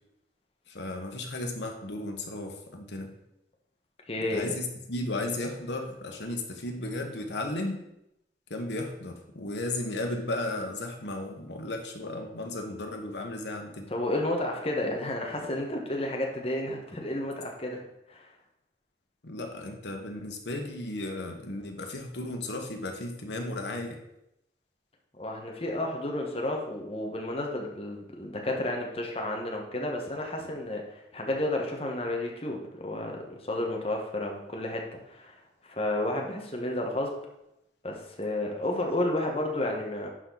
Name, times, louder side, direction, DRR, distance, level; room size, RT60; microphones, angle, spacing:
voice 1, 0.7-3.1 4.2-7.8 8.5-13.9 19.2-24.0, left 2 dB, 80° left, 3 dB, 1.4 m, -35 dB
voice 2, 4.1-4.6 13.9-17.8 18.1-18.3 25.2-35.4 35.6-37.2 37.8-40.1, left 1 dB, 35° left, 1 dB, 1.4 m, -31 dB
11.0 x 4.5 x 4.1 m, 0.84 s
head